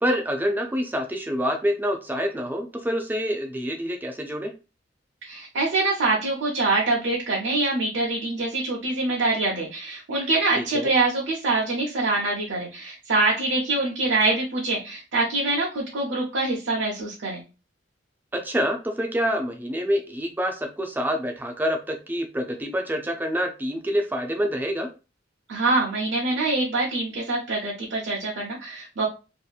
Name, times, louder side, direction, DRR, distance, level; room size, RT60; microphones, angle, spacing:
voice 1, 0.0-4.5 10.6-10.9 18.3-24.9, equal, 10° right, 4 dB, 0.4 m, -27 dB
voice 2, 5.2-17.4 25.5-29.0, right 2 dB, 75° right, -4 dB, 0.7 m, -25 dB
2.8 x 2.5 x 2.3 m, 0.31 s
head